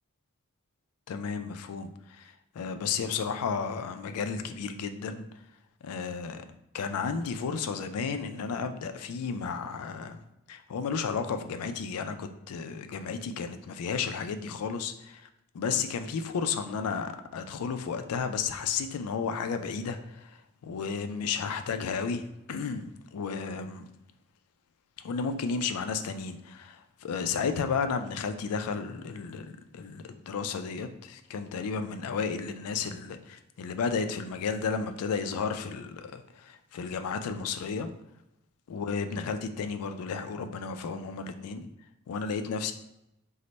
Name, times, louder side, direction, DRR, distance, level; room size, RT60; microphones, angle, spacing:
voice 1, 1.1-5.2 5.8-6.4 6.7-10.2 10.5-15.3 15.5-20.3 20.6-23.9 25.0-37.9 38.7-41.7 42.1-42.7, left 5 dB, 85° left, 8 dB, 0.3 m, -33 dB
3.1 x 2.1 x 3.9 m, 0.89 s
head